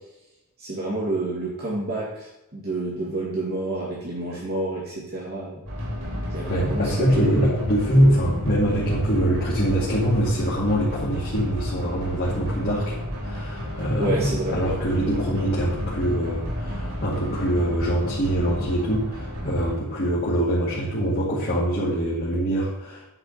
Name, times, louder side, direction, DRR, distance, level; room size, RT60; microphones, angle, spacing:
voice 1, 0.6-5.6 6.3-7.4 13.9-14.6, right 2 dB, 45° right, -5 dB, 2.4 m, -29 dB
sound 1, 5.7-19.8, left 1 dB, 85° right, 3.7 m, -32 dB
voice 2, 6.5-13.0 13.2-23.0, equal, 45° left, -6 dB, 2.3 m, -23 dB
9.9 x 5.1 x 6.6 m, 0.89 s
head